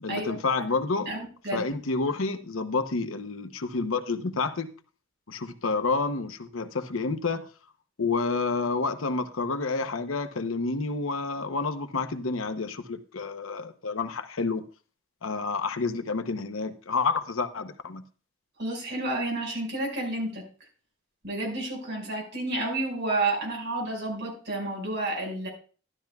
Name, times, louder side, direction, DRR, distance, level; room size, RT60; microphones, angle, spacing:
voice 1, 0.0-1.1 1.5-4.7 5.3-7.5 8.0-14.6 15.2-18.0, left 4 dB, 90° left, 0.8 m, -29 dB
voice 2, 1.1-1.7 18.6-20.4 21.2-25.5, right 2 dB, 60° right, 5.3 m, -30 dB
12.5 x 12.0 x 2.3 m
head